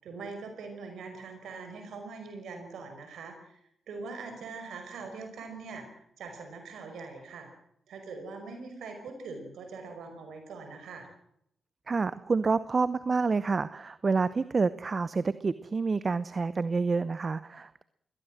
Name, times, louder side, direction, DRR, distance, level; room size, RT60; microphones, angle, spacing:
voice 1, 0.0-3.4 3.9-5.9 6.2-7.5 7.9-11.1, right 4 dB, 75° right, 6 dB, 5.4 m, -42 dB
voice 2, 11.9-17.8, right 4 dB, 45° right, 16 dB, 0.8 m, -28 dB
22.0 x 18.0 x 7.7 m, 0.74 s
hypercardioid pair, 40°, 0 cm